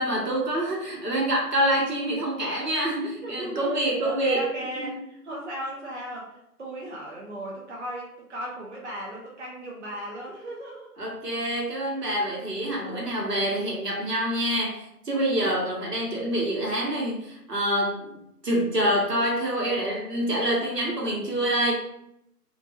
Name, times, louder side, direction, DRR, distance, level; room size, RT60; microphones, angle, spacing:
voice 1, 0.0-4.4 4.8-5.0 11.0-21.7, right 1 dB, 80° right, -2 dB, 1.2 m, -26 dB
voice 2, 3.2-11.0 12.8-13.2, right 1 dB, 50° right, -2 dB, 0.5 m, -36 dB
2.6 x 2.4 x 2.6 m, 0.79 s
figure-of-eight pair, 155°, 47 cm